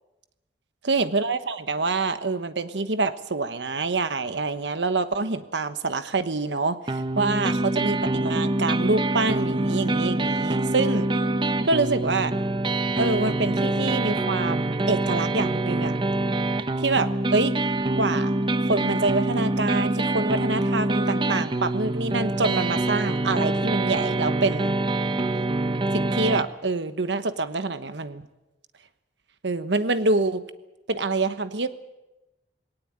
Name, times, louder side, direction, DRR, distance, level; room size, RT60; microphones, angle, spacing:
voice 1, 0.8-11.1 11.6-12.3 13.0-15.9 16.8-17.5 18.0-18.3 18.7-24.8 25.9-28.3 29.4-30.4 30.9-31.7, right 3 dB, 85° right, 11 dB, 1.2 m, -26 dB
sound 1, 6.9-26.4, right 2 dB, 30° right, 0.9 m, -25 dB
20.0 x 18.0 x 8.9 m, 1.0 s
head